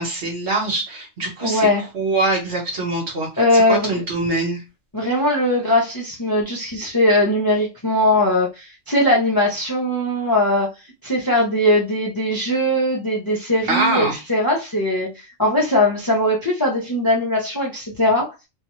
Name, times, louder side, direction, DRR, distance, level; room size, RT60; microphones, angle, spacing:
voice 1, 0.0-1.7 1.9-4.6 13.7-14.2, right 2 dB, 55° right, 1.3 m, -23 dB
voice 2, 1.4-1.9 3.4-4.0 4.9-10.7 11.0-18.3, left 1 dB, 25° left, 0.5 m, -20 dB
2.7 x 2.2 x 3.0 m
omnidirectional pair, 1.3 m